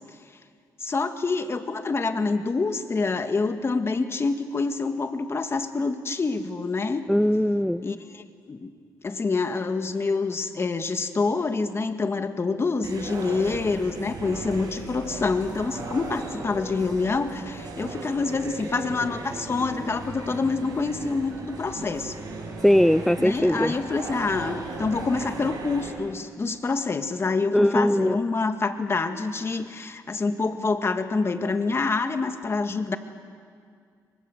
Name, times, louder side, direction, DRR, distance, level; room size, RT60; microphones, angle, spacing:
voice 1, 0.8-7.0 7.8-8.7 9.0-22.2 23.2-33.0, left 4 dB, 35° left, 7 dB, 1.9 m, -27 dB
voice 2, 7.1-7.8 22.6-23.7 27.5-28.2, equal, 5° left, 12 dB, 0.6 m, -20 dB
sound 1, 12.8-25.9, right 3 dB, 65° right, 6.5 m, -37 dB
27.0 x 23.5 x 8.0 m, 2.1 s
cardioid pair, 80°, 7 cm